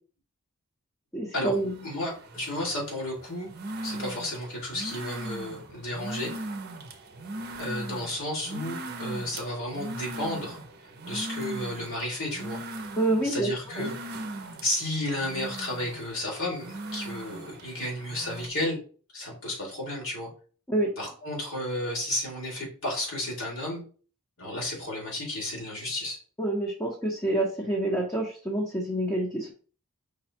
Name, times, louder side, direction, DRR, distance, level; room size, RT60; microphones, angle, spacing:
voice 1, 1.1-1.8 13.0-13.5 13.8-13.9 20.7-20.9 26.4-29.5, right 1 dB, 10° left, -3 dB, 0.9 m, -27 dB
sound 1, 1.6-18.5, right 2 dB, 45° right, 0.7 m, -39 dB
voice 2, 1.8-3.5 3.8-6.3 7.6-10.6 11.0-12.6 13.2-13.9 14.6-18.8 19.1-20.3 21.0-23.8 24.4-26.2, left 1 dB, 65° left, -2 dB, 2.6 m, -32 dB
5.1 x 2.3 x 4.3 m, 0.39 s
head